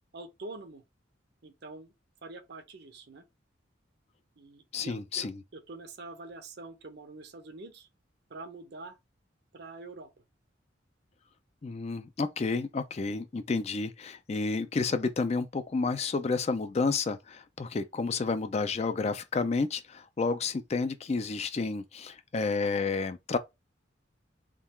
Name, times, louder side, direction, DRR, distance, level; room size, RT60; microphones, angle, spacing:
voice 1, 0.1-0.8 1.4-1.9 2.2-3.2 4.4-7.9 8.3-9.0 9.5-10.1, right 3 dB, 60° right, 0.7 m, -45 dB
voice 2, 4.7-5.4 11.6-23.4, left 4 dB, 35° left, 0.4 m, -30 dB
3.7 x 2.4 x 4.3 m
head